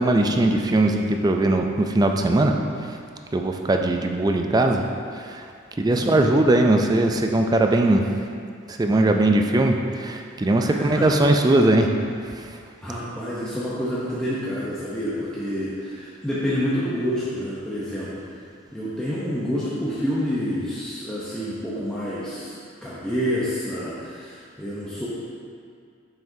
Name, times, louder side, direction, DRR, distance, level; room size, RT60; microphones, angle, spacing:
voice 1, 0.0-3.0 3.3-4.8 5.1-5.5 5.8-8.1 8.7-11.9 12.2-12.6, right 2 dB, 20° right, 3 dB, 0.3 m, -20 dB
voice 2, 10.7-11.3 12.8-18.3 18.7-25.1, equal, 5° left, -10 dB, 0.7 m, -28 dB
7.4 x 5.8 x 2.7 m, 2.3 s
head